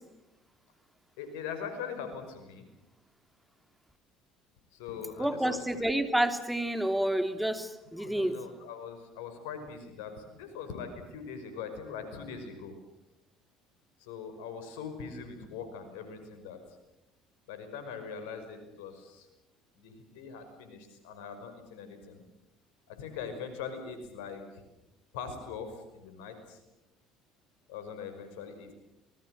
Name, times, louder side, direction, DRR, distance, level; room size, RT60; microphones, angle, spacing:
voice 1, 1.2-2.7 4.7-5.8 8.0-12.7 14.0-16.6 17.5-19.3 19.8-22.2 22.9-24.6 25.1-26.6 27.7-28.7, left 6 dB, 80° left, 8 dB, 5.6 m, -42 dB
voice 2, 5.2-8.4, right 1 dB, 5° right, 8 dB, 3.1 m, -29 dB
28.0 x 20.0 x 7.9 m, 0.92 s
hypercardioid pair, 70°, 0 cm